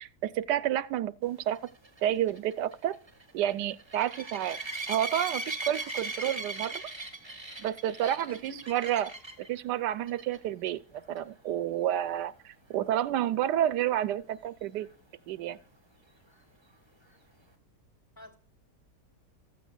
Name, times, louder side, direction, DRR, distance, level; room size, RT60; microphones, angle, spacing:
voice 1, 0.0-1.6 2.0-3.0 3.3-4.6 4.9-6.8 7.6-9.1 9.4-10.8 11.1-14.9 15.3-15.6, right 11 dB, 85° right, 1.3 m, -30 dB
sound 1, 1.5-9.5 10.1-10.4 10.7-10.8 11.2-11.3 14.8-14.9, right 2 dB, 15° right, 1.4 m, -38 dB
voice 2, 8.0-8.8 18.2-18.4, left 1 dB, 10° left, 3.3 m, -46 dB
15.0 x 14.5 x 2.3 m
omnidirectional pair, 1.8 m